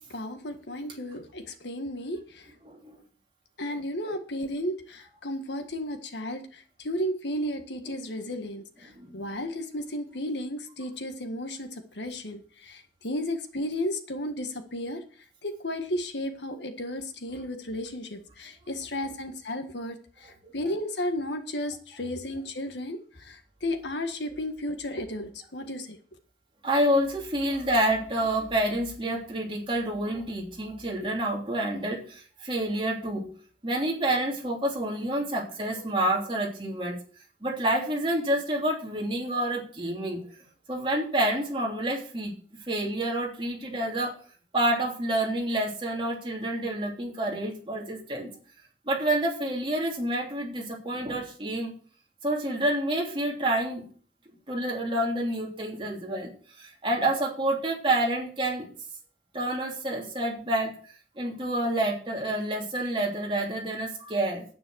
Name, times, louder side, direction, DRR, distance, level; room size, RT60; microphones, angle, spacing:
voice 1, 0.1-2.5 3.6-15.0 15.4-26.0, left 1 dB, 75° left, 7 dB, 1.7 m, -34 dB
voice 2, 2.6-2.9 8.9-9.2 20.4-20.5 26.6-33.3 33.6-37.0 37.4-40.2 40.7-42.3 42.7-44.1 44.5-48.3 48.9-51.7 52.2-53.9 54.5-56.3 56.6-58.7 59.3-60.7 61.2-64.4, right 1 dB, 30° right, -1 dB, 3.1 m, -28 dB
9.7 x 9.2 x 6.4 m, 0.43 s
head